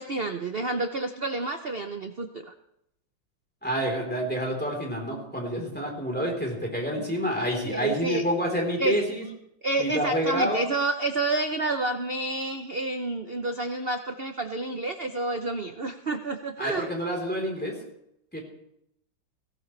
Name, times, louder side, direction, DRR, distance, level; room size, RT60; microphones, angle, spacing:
voice 1, 0.0-2.5 7.6-8.2 8.8-9.0 9.6-16.9, right 2 dB, 90° right, 7 dB, 0.5 m, -29 dB
voice 2, 3.6-9.3 9.8-10.6 16.6-17.8 18.3-18.4, equal, 5° left, -1 dB, 3.6 m, -28 dB
17.5 x 17.0 x 3.3 m, 0.79 s
omnidirectional pair, 2.2 m